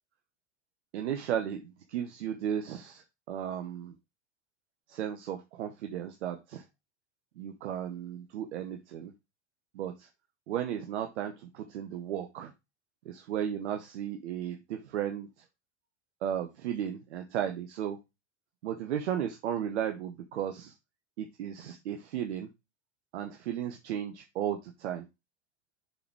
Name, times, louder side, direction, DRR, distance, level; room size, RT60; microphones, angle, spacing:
voice 1, 0.9-3.9 4.9-6.6 7.4-9.1 9.7-10.1 10.5-12.5 13.0-15.3 16.2-18.0 18.6-20.7 21.2-22.5 23.1-25.0, right 10 dB, 75° right, 6 dB, 1.0 m, -35 dB
6.7 x 4.1 x 4.5 m, 0.23 s
hypercardioid pair, 95°, 34 cm